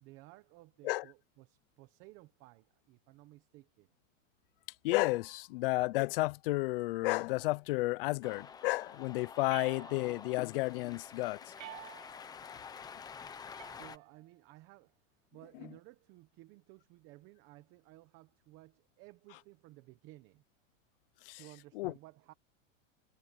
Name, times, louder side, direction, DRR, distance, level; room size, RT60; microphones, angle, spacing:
voice 1, 0.0-3.9 13.7-14.9 15.3-20.4 21.4-22.3, right 19 dB, 30° right, 0.9 m, -56 dB
voice 2, 4.8-11.4 21.2-21.4 21.7-21.9, left 21 dB, 45° left, 0.6 m, -32 dB
Cheering, 8.2-14.0, left 6 dB, 10° left, 0.8 m, -49 dB
sound 1, 9.5-10.4 11.6-12.4 13.6-14.4, right 15 dB, 70° right, 3.4 m, -50 dB
supercardioid pair, 165°, 39 cm